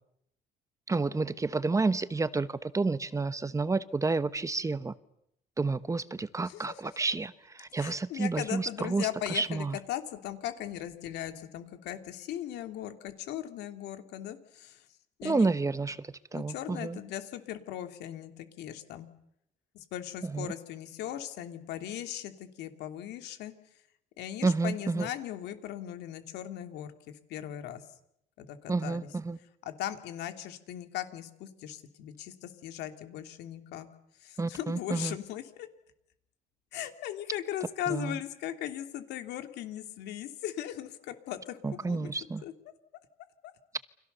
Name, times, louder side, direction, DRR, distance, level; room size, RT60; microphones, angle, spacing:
voice 1, 0.9-4.9 5.6-7.3 7.6-9.8 15.2-17.0 20.3-20.5 24.4-25.1 28.7-29.4 34.4-35.2 37.9-38.2 41.6-42.4, right 3 dB, 20° right, 14 dB, 1.1 m, -30 dB
voice 2, 6.4-6.8 7.8-14.8 15.2-15.5 16.3-19.1 19.7-23.5 24.2-27.8 28.4-29.1 29.6-33.9 34.2-35.7 36.7-42.1 42.4-42.5, left 12 dB, 80° left, 7 dB, 2.9 m, -38 dB
29.5 x 25.5 x 6.9 m, 0.77 s
cardioid pair, 110°, 17 cm